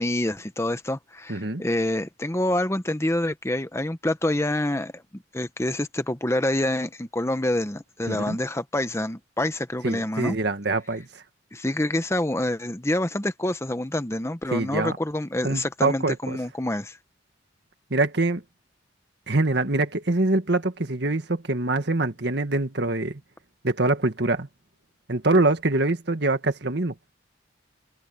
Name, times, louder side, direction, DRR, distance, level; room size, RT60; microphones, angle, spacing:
voice 1, 0.0-10.4 11.5-17.0, left 1 dB, 15° left, 0.9 m, -27 dB
voice 2, 1.3-1.6 8.1-8.4 9.8-11.2 14.5-15.0 15.4-16.4 17.9-18.4 19.3-23.2 23.6-24.5 25.1-26.9, right 2 dB, 55° right, 1.7 m, -24 dB
open air
head